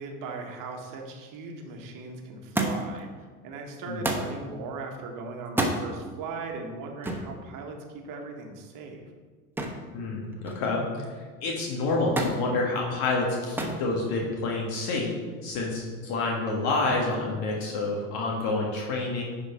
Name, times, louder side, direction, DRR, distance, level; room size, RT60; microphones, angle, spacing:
voice 1, 0.0-3.1 3.4-9.0, right 3 dB, 45° right, 3 dB, 1.5 m, -38 dB
Thump thud, 2.5-3.0 4.0-4.3 5.4-5.8 7.0-7.3 9.6-9.9 10.2-10.8 12.2-12.4 13.6-13.8 14.8-15.3 16.2-16.3, right 1 dB, 5° right, 1.0 m, -29 dB
voice 2, 9.9-11.0 11.4-15.2 15.4-19.2, left 3 dB, 50° left, -2 dB, 1.9 m, -28 dB
10.5 x 4.5 x 4.5 m, 1.5 s
figure-of-eight pair, 80°, 46 cm